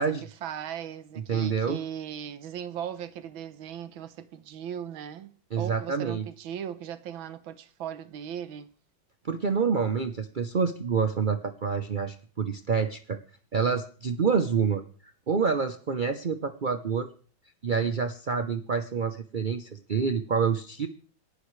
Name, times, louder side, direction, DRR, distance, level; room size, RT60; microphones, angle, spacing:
voice 1, 0.4-8.7, right 9 dB, 85° right, 1.7 m, -38 dB
voice 2, 1.3-1.8 5.5-6.2 9.2-13.2 13.5-14.8 15.3-17.1 17.6-20.9, right 6 dB, 55° right, 0.5 m, -27 dB
27.5 x 11.5 x 3.2 m
omnidirectional pair, 2.1 m